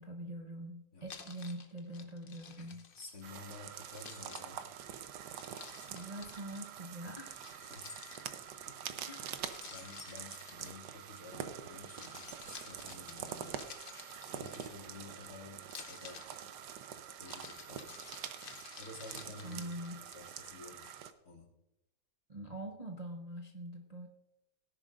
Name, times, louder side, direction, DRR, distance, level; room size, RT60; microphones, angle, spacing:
voice 1, 0.0-2.8 5.8-7.4 9.0-9.5 19.4-20.0 22.3-24.1, right 1 dB, 30° right, 1 dB, 0.8 m, -44 dB
Keys jangling, 1.1-3.5 3.9-6.6 7.4-8.6 9.5-11.3 11.7-15.1 15.6-20.2, left 5 dB, 45° left, 0.8 m, -52 dB
voice 2, 2.6-4.6 7.6-7.9 8.6-9.1 9.6-13.7 14.2-16.3 17.2-18.0 18.8-20.9 21.2-21.5, left 3 dB, 65° left, -2 dB, 3.0 m, -52 dB
sound 1, 3.2-21.1, right 9 dB, 80° right, 1.3 m, -46 dB
17.5 x 10.5 x 2.5 m, 0.90 s
omnidirectional pair, 1.8 m